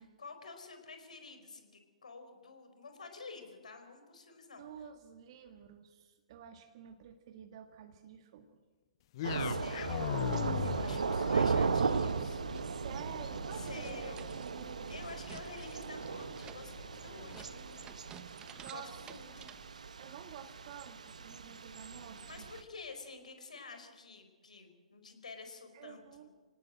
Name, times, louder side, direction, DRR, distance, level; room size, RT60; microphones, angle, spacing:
voice 1, 0.0-4.6 9.4-10.2 10.6-12.4 13.5-14.2 14.9-17.7 18.7-19.5 22.3-26.0, left 4 dB, 75° left, 7 dB, 4.7 m, -49 dB
voice 2, 4.6-8.6 10.5-11.1 12.4-15.0 18.6-19.1 20.0-22.5 25.7-26.3, right 8 dB, 45° right, 5 dB, 1.7 m, -50 dB
sound 1, 9.1-17.4, left 13 dB, 45° left, 0.6 m, -42 dB
Thunder / Rain, 9.2-22.6, right 5 dB, 70° right, 1.3 m, -37 dB
sound 2, 9.4-19.7, right 9 dB, 20° right, 1.0 m, -56 dB
26.5 x 18.0 x 7.8 m, 1.4 s
figure-of-eight pair, 125°, 4 cm